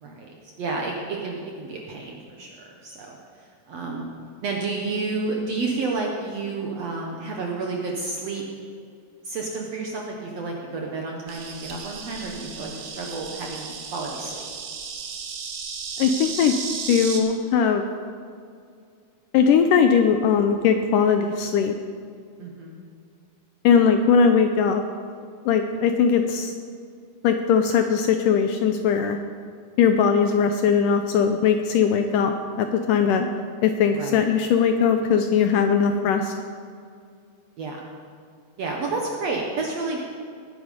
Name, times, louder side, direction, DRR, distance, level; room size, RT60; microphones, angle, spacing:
voice 1, 0.0-3.2 3.7-4.1 4.4-8.4 9.2-14.5 22.4-22.8 33.9-34.2 37.6-37.8 38.6-40.0, right 3 dB, 65° right, 0 dB, 1.7 m, -30 dB
Insect, 11.3-17.2, right 5 dB, 80° right, 3.1 m, -35 dB
voice 2, 16.0-16.6 16.9-17.9 19.3-21.7 23.6-24.8 25.5-26.5 27.2-29.2 29.8-33.3 33.6-36.3, left 6 dB, 80° left, 6 dB, 2.0 m, -20 dB
19.0 x 9.1 x 5.1 m, 2.3 s
omnidirectional pair, 4.3 m